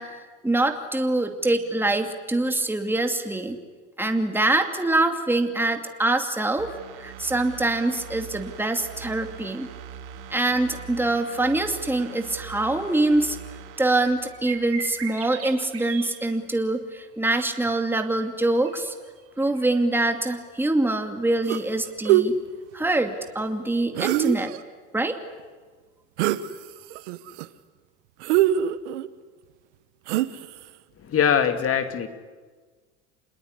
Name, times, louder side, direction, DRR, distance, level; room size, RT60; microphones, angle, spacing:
voice 1, 0.0-3.6 4.0-6.7 7.0-9.7 10.3-13.4 13.8-18.9 19.4-22.4 22.7-24.5 24.9-25.2, right 2 dB, 5° right, 5 dB, 2.5 m, -24 dB
sound 1, 6.6-15.2 15.6-15.7, right 8 dB, 65° right, 2.7 m, -42 dB
sound 2, 7.4-23.8, right 7 dB, 40° right, 6.0 m, -46 dB
sound 3, 21.5-21.7 22.0-22.3 23.9-24.6 26.2-26.5 26.9-27.5 28.2-29.1 30.1-30.6, right 13 dB, 80° right, 1.3 m, -22 dB
voice 2, 31.0-32.1, left 8 dB, 40° left, 9 dB, 2.6 m, -22 dB
27.5 x 20.5 x 9.7 m, 1.5 s
hypercardioid pair, 85°, 35 cm